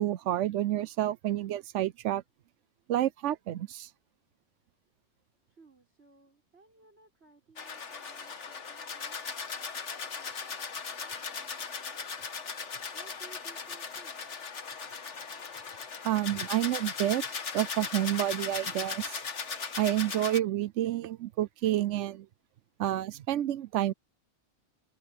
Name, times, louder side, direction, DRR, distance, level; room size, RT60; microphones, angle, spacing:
voice 1, 0.0-2.2 2.9-3.9 16.0-17.2 17.5-19.2 19.8-22.3 22.8-23.9, right 13 dB, 85° right, 0.9 m, -29 dB
voice 2, 5.5-12.0 12.4-14.3 16.3-16.5, right 3 dB, 60° right, 6.6 m, -60 dB
sound 1, 7.6-20.4, left 5 dB, 75° left, 1.7 m, -38 dB
open air
omnidirectional pair, 1.2 m